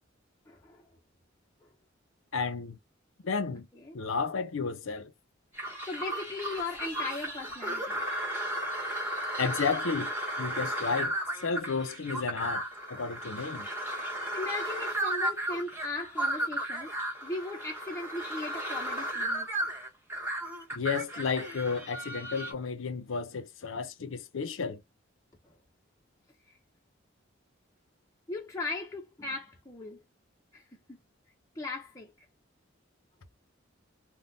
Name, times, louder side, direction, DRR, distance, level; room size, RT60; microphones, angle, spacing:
voice 1, 0.5-0.9 1.6-1.7 3.7-4.0 5.5-8.0 14.0-17.0 17.2-19.5 25.4-25.5 26.5-26.6 28.3-30.0 30.5-31.0 31.5-32.3, left 3 dB, 15° left, 0.6 m, -38 dB
voice 2, 2.3-2.8 3.2-3.7 3.9-5.1 9.4-11.1 11.4-12.6 12.9-13.7 20.7-24.8, left 5 dB, 75° left, 0.6 m, -32 dB
sound 1, 5.6-22.5, right 1 dB, 10° right, 1.0 m, -34 dB
3.4 x 2.2 x 2.6 m
head